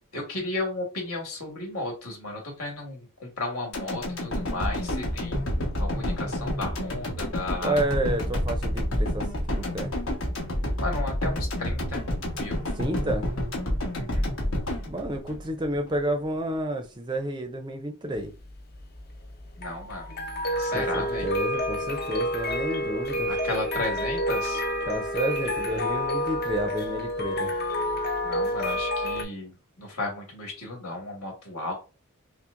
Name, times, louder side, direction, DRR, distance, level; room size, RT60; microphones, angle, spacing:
voice 1, 0.1-5.5 5.8-7.8 10.8-12.0 12.3-12.6 13.9-14.3 19.6-20.1 20.6-21.3 23.3-24.6 28.2-31.7, left 2 dB, 80° left, 1.7 m, -34 dB
sound 1, 3.7-16.0 16.3-16.4, left 1 dB, 65° left, 1.3 m, -29 dB
voice 2, 7.6-9.3 9.6-9.9 12.8-13.3 14.9-18.3 20.7-23.3 24.8-27.5, right 1 dB, 20° right, 0.5 m, -30 dB
sound 2, 18.2-29.2, equal, 45° left, 0.6 m, -29 dB
5.6 x 2.1 x 2.5 m
head